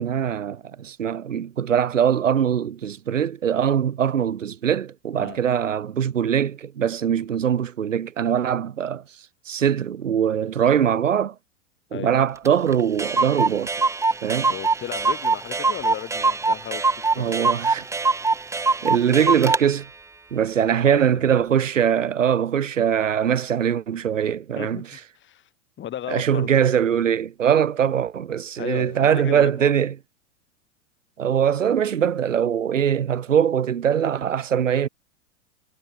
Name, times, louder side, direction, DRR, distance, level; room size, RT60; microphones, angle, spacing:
voice 1, 0.0-9.0 9.5-11.3 11.9-13.9 14.2-14.5 17.2-17.9 18.8-19.9 20.3-24.9 26.1-29.9 31.2-34.9, right 8 dB, 80° right, 4.1 m, -22 dB
Clock, 12.4-12.5 12.7-12.8 13.0-19.6, right 3 dB, 10° right, 0.9 m, -23 dB
voice 2, 14.5-16.8 17.1-17.3 20.8-21.4 24.6-24.8 25.1-25.5 25.8-26.5 28.6-29.7, left 11 dB, 30° left, 8.0 m, -35 dB
hypercardioid pair, 105°, 37 cm